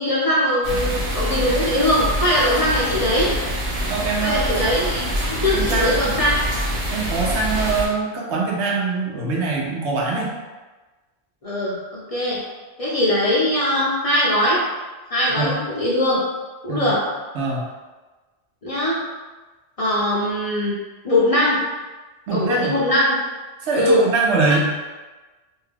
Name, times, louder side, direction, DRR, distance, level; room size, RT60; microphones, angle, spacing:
voice 1, 0.0-3.3 4.2-6.4 11.4-12.4 12.8-14.6 15.1-16.2 16.6-17.0 18.6-19.0 19.8-20.8 21.0-21.6 22.3-23.2 23.7-24.0, left 1 dB, 45° left, -7 dB, 0.5 m, -21 dB
sound 1, 0.6-7.9, equal, 55° right, 0.8 m, -25 dB
voice 2, 3.9-4.6 5.5-6.1 6.9-10.3 15.3-15.5 16.7-16.9 17.3-17.6 22.3-22.8 23.6-24.6, right 4 dB, 85° right, -2 dB, 1.0 m, -23 dB
2.7 x 2.3 x 3.2 m, 1.2 s
omnidirectional pair, 1.1 m